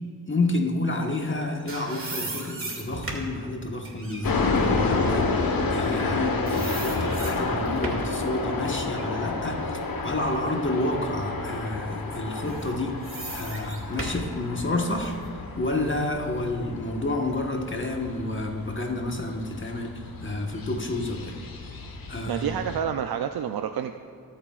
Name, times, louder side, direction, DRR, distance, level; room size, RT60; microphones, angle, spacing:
voice 1, 0.3-15.2 15.6-21.4 22.1-22.5, left 2 dB, 35° left, 3 dB, 1.3 m, -30 dB
sound 1, 1.2-6.1 6.5-8.2 8.6-10.6 11.1-11.2 12.2-15.3, right 2 dB, 35° right, 2.2 m, -38 dB
sound 2, 4.2-22.8, left 3 dB, 70° left, 1.3 m, -30 dB
voice 2, 22.3-23.9, right 8 dB, 85° right, 7 dB, 0.5 m, -28 dB
21.5 x 8.7 x 2.4 m, 2.7 s
cardioid pair, 70°, 36 cm